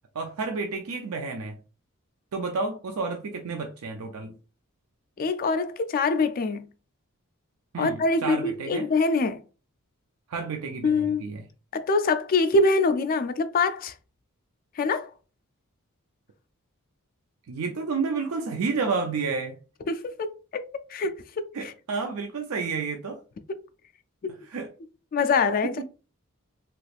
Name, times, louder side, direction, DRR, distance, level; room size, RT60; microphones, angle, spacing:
voice 1, 0.1-1.6 2.3-4.3 7.7-8.9 10.3-11.4 17.5-19.6 21.5-23.2 24.5-24.7 25.6-25.7, right 4 dB, 80° right, 0.5 m, -30 dB
voice 2, 5.2-6.7 7.8-9.4 10.8-11.2 11.7-13.9 14.8-15.1 19.9-20.6 20.9-21.7 24.2-24.3 25.1-25.8, left 3 dB, 40° left, 0.3 m, -24 dB
3.3 x 3.0 x 2.4 m
head